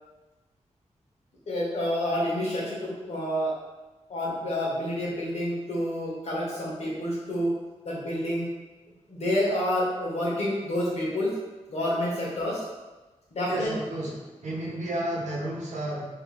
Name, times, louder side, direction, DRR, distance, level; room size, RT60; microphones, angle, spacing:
voice 1, 1.5-3.5 4.1-7.5 7.8-8.4 9.1-11.3 11.7-12.6 13.3-13.7, left 1 dB, 65° left, -5 dB, 1.2 m, -28 dB
voice 2, 13.5-16.1, right 1 dB, 80° right, -3 dB, 0.9 m, -32 dB
3.1 x 3.0 x 3.3 m, 1.2 s
wide cardioid pair, 155°, 12 cm